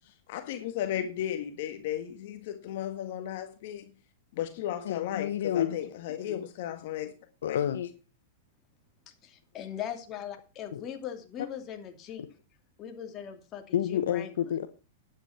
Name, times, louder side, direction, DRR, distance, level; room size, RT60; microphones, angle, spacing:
voice 1, 0.3-3.9 4.3-7.1 7.5-7.6, left 11 dB, 60° left, 8 dB, 1.6 m, -35 dB
voice 2, 4.8-5.8 7.4-7.9 10.7-10.8 13.7-14.7, left 10 dB, 75° left, 10 dB, 1.1 m, -29 dB
voice 3, 9.2-12.2 12.8-14.3, left 9 dB, 30° left, 5 dB, 2.8 m, -40 dB
11.0 x 9.3 x 5.9 m, 0.33 s
hypercardioid pair, 125°, 0 cm